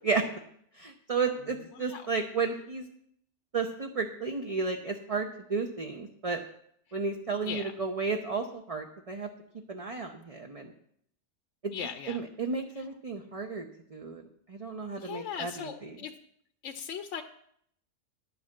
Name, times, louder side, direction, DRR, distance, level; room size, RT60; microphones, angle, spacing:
voice 1, 0.8-2.9 3.5-6.4 6.9-9.3 9.7-10.7 11.6-11.7 12.1-13.7 13.9-14.2 14.5-15.7, right 4 dB, 35° right, 3 dB, 0.7 m, -32 dB
voice 2, 1.7-2.1 7.4-7.7 11.7-12.2 12.8-12.9 15.0-16.1 16.6-17.2, left 8 dB, 70° left, 7 dB, 1.0 m, -38 dB
10.5 x 5.9 x 7.6 m, 0.69 s
omnidirectional pair, 1.4 m